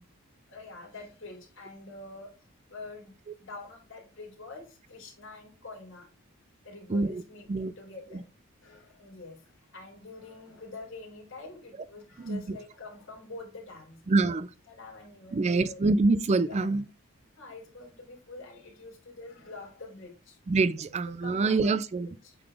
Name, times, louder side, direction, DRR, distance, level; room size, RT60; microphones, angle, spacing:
voice 1, 0.5-3.1 3.4-6.1 6.6-8.3 8.6-14.3 14.7-15.8 16.5-16.7 17.4-20.4 21.2-21.8 22.2-22.4, left 3 dB, 60° left, 3.3 m, -46 dB
voice 2, 6.9-7.2 7.5-7.7 12.2-12.6 14.1-14.5 15.3-16.8 20.5-22.1, right 3 dB, 30° right, 0.3 m, -25 dB
8.6 x 4.0 x 3.3 m
head